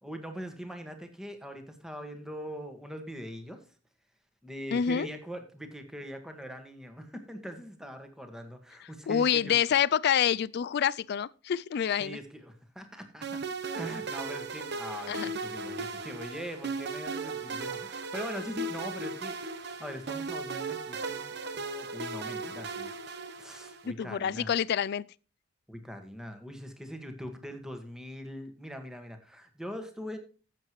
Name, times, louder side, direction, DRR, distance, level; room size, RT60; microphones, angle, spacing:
voice 1, 0.0-3.6 4.4-9.5 12.0-13.4 13.7-22.9 23.4-24.5 25.7-30.2, equal, 5° right, 1.7 m, -42 dB
voice 2, 4.7-5.1 9.1-12.2 15.1-15.3 23.9-25.0, left 8 dB, 55° left, 0.4 m, -27 dB
sound 1, 13.2-23.9, right 3 dB, 60° right, 1.0 m, -37 dB
14.0 x 7.5 x 3.1 m
head